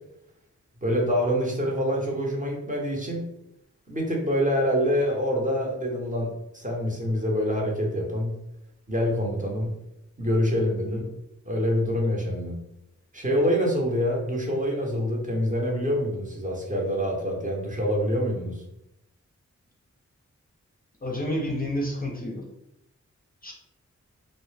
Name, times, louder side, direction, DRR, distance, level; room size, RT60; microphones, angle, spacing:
voice 1, 0.8-3.2 3.9-8.3 8.9-9.7 10.2-11.0 11.4-12.6 13.1-18.6, equal, 25° right, -1 dB, 0.8 m, -26 dB
voice 2, 21.0-22.4 23.4-23.5, left 1 dB, 30° left, -1 dB, 0.5 m, -30 dB
2.1 x 2.0 x 3.2 m, 0.83 s
cardioid pair, 40°, 30 cm